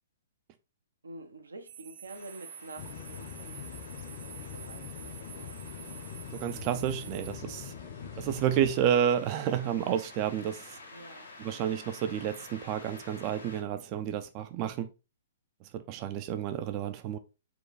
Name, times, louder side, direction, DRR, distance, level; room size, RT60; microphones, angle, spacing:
voice 1, 1.0-3.3 4.2-5.6 10.9-11.3, right 2 dB, 85° right, 0.7 m, -47 dB
sound 1, 1.7-7.3, right 11 dB, 55° right, 1.1 m, -48 dB
sound 2, 2.1-13.6, left 3 dB, 85° left, 1.9 m, -51 dB
sound 3, 2.8-8.8, left 7 dB, 50° left, 0.8 m, -43 dB
voice 2, 6.3-7.7 8.2-10.8 11.4-14.9 15.6-17.2, right 9 dB, 35° right, 0.4 m, -30 dB
4.4 x 2.3 x 4.0 m
hypercardioid pair, 125°, 0 cm